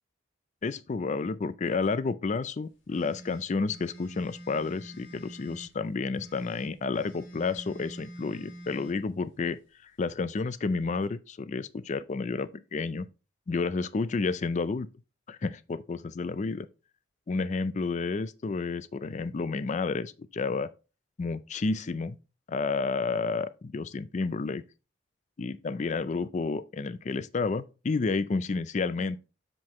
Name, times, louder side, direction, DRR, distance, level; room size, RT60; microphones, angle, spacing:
voice 1, 0.6-13.1 13.5-14.9 15.3-16.7 17.3-20.7 21.2-22.2 22.5-24.6 25.4-29.2, left 4 dB, 40° left, 0.4 m, -31 dB
sound 1, 2.9-5.7 6.1-9.0, equal, 80° left, 2.0 m, -46 dB
7.6 x 4.6 x 3.6 m
head